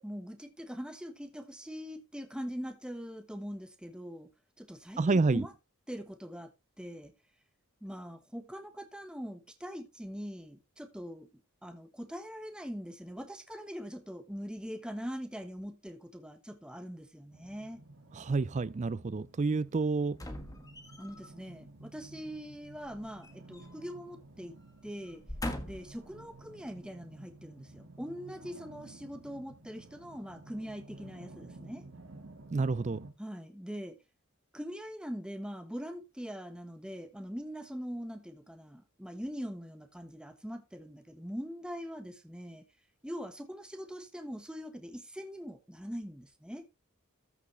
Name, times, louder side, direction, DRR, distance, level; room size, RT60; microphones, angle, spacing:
voice 1, 0.0-4.3 4.6-5.5 5.9-6.5 6.8-7.1 7.8-11.3 11.6-17.8 21.0-24.6 24.8-25.2 25.6-31.8 33.2-34.0 34.5-42.6 43.0-46.6, equal, 5° right, 1.2 m, -42 dB
voice 2, 5.0-5.5 18.1-20.2 32.5-33.0, right 3 dB, 30° right, 0.4 m, -29 dB
sound 1, 17.3-33.1, right 2 dB, 60° right, 1.9 m, -53 dB
sound 2, 20.1-21.3 22.8-24.0 24.3-24.5 25.1-26.0 26.7-26.8, left 1 dB, 15° left, 1.5 m, -41 dB
14.0 x 6.2 x 3.2 m
head